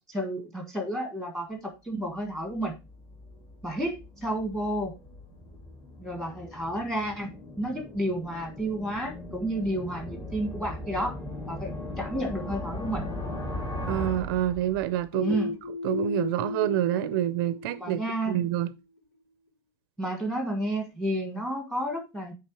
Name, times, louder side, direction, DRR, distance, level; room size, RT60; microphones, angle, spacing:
voice 1, 0.1-2.7 3.6-4.9 6.0-7.3 7.6-11.2 11.5-13.1 15.2-15.6 17.8-18.5 20.0-22.3, right 1 dB, 5° left, 1.6 m, -31 dB
sound 1, 2.2-15.2, left 1 dB, 25° left, 2.2 m, -39 dB
voice 2, 13.9-15.4 15.8-18.7, right 13 dB, 55° right, 0.5 m, -27 dB
sound 2, 15.1-18.8, left 3 dB, 75° left, 2.0 m, -35 dB
8.9 x 3.5 x 4.7 m
supercardioid pair, 165°, 14 cm